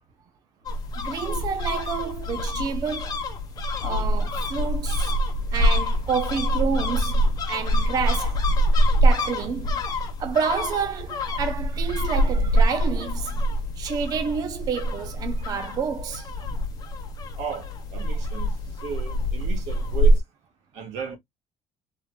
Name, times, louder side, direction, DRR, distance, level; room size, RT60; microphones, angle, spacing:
sound 1, 0.7-20.2, equal, 35° left, 1.0 m, -25 dB
voice 1, 1.0-3.2 3.8-5.2 5.5-8.5 9.0-9.8 10.2-13.4 13.8-16.3, right 6 dB, 35° right, 0.5 m, -29 dB
voice 2, 17.4-18.5 18.8-20.2 20.7-21.2, right 5 dB, 85° right, 1.7 m, -34 dB
3.7 x 3.1 x 2.2 m
cardioid pair, 175°, 11 cm